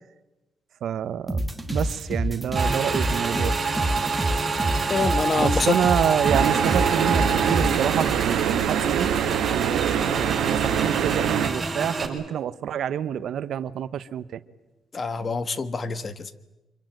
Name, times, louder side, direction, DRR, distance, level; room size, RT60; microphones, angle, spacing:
voice 1, 0.8-1.4 1.7-3.6 5.4-9.1 9.5-14.4, right 9 dB, 70° right, 14 dB, 0.9 m, -27 dB
sound 1, 1.3-7.8, right 1 dB, 5° right, 2.3 m, -27 dB
Motorcycle / Engine, 2.5-12.1, right 4 dB, 30° right, 6.2 m, -27 dB
voice 2, 4.9-5.8 14.9-16.5, left 4 dB, 35° left, 14 dB, 1.5 m, -26 dB
sound 2, 6.3-11.5, right 9 dB, 85° right, 1.5 m, -25 dB
25.5 x 23.5 x 9.2 m, 1.1 s
cardioid pair, 90°, 0 cm